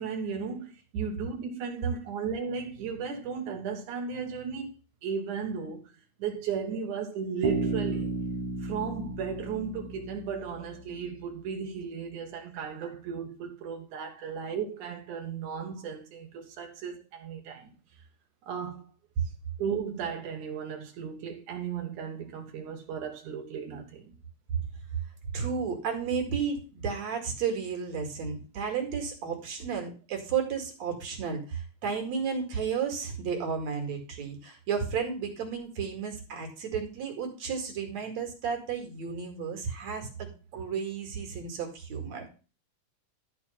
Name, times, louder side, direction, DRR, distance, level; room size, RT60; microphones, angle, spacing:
voice 1, 0.0-4.7 5.0-5.8 6.2-8.2 8.6-17.7 18.5-18.8 19.6-24.1, right 6 dB, 90° right, 2.9 m, -35 dB
Bass guitar, 7.4-11.1, right 3 dB, 50° right, 2.1 m, -34 dB
voice 2, 25.3-42.3, right 6 dB, 65° right, 3.5 m, -33 dB
12.5 x 4.5 x 5.7 m
omnidirectional pair, 3.4 m